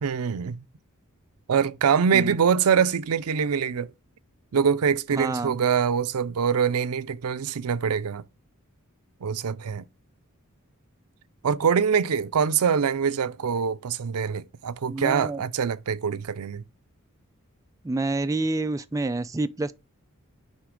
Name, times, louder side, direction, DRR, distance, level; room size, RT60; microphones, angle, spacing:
voice 1, 0.0-0.6 1.5-3.9 4.5-8.2 9.2-9.8 11.4-16.6, right 7 dB, 80° right, 0.5 m, -24 dB
voice 2, 5.1-5.6 14.8-15.4 17.8-19.7, right 2 dB, 15° right, 0.4 m, -28 dB
9.6 x 3.3 x 5.0 m
head